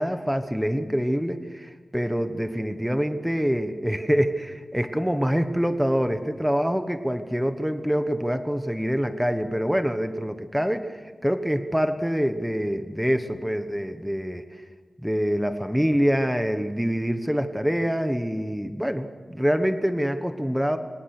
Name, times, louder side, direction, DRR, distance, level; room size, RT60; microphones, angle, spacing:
voice 1, 0.0-14.4 15.0-20.8, equal, 5° right, 8 dB, 1.2 m, -25 dB
26.0 x 18.5 x 6.6 m, 1.4 s
wide cardioid pair, 110°, 0 cm